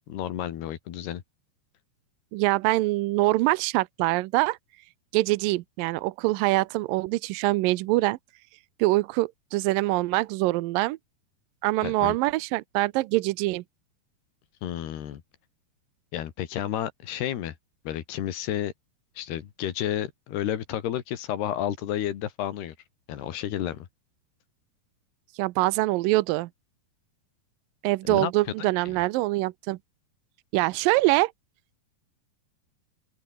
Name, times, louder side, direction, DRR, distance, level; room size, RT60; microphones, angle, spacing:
voice 1, 0.1-1.2 11.8-12.2 14.6-15.2 16.1-17.6 17.9-18.7 19.2-22.8 23.1-23.9 28.1-28.3 28.6-29.0, left 11 dB, 80° left, 4.0 m, -31 dB
voice 2, 2.3-4.6 5.1-8.2 8.8-11.0 11.6-13.6 25.4-26.5 27.8-29.8 30.5-31.3, right 20 dB, 80° right, 2.1 m, -24 dB
open air
omnidirectional pair, 4.6 m